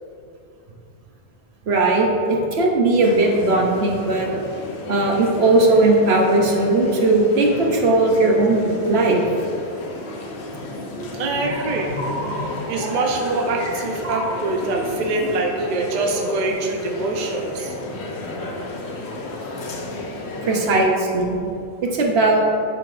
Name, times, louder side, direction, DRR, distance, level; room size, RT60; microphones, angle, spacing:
voice 1, 1.7-4.3 4.9-9.2 20.4-21.4 21.8-22.4, right 2 dB, 70° right, 0 dB, 1.0 m, -18 dB
sound 1, 3.0-20.8, left 2 dB, 70° left, 1.0 m, -33 dB
voice 2, 11.2-12.0 12.7-17.7, right 2 dB, 45° right, 0 dB, 0.7 m, -24 dB
sound 2, 11.3-16.5, equal, 85° right, 1.6 m, -32 dB
10.5 x 4.0 x 2.5 m, 2.6 s
omnidirectional pair, 1.1 m